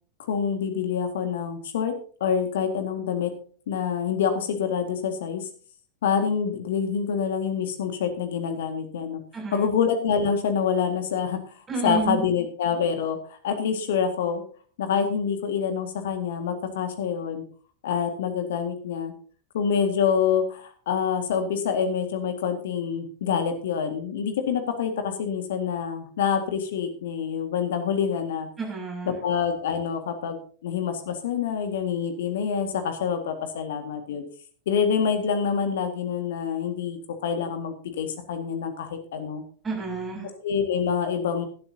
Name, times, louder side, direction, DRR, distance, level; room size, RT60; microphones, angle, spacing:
voice 1, 0.3-1.9 2.2-3.3 3.7-5.5 6.0-9.2 9.5-11.4 11.8-14.4 14.8-17.4 17.8-19.1 19.5-28.5 29.1-34.2 34.7-39.4 40.4-41.4, left 7 dB, 60° left, 7 dB, 1.8 m, -26 dB
voice 2, 9.3-9.7 11.7-12.2 28.6-29.2 39.6-40.3, right 4 dB, 15° right, 0 dB, 6.7 m, -30 dB
17.5 x 12.0 x 2.8 m, 0.43 s
figure-of-eight pair, 90°, 0 cm